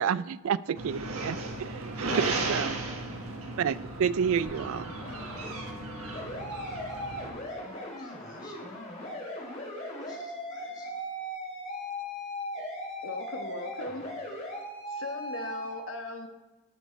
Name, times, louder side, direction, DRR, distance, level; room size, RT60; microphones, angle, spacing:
voice 1, 0.0-2.8 3.6-4.9, right 7 dB, 65° right, 18 dB, 0.3 m, -30 dB
sound 1, 0.7-7.3, right 2 dB, 90° right, 1.5 m, -35 dB
sound 2, 4.3-15.7, left 1 dB, 35° left, 3.0 m, -38 dB
voice 2, 7.4-8.6 10.0-10.9, left 1 dB, 20° left, -3 dB, 2.3 m, -56 dB
voice 3, 13.0-14.1 14.9-16.3, left 2 dB, 65° left, 5 dB, 1.3 m, -38 dB
18.0 x 6.2 x 4.6 m, 1.1 s
head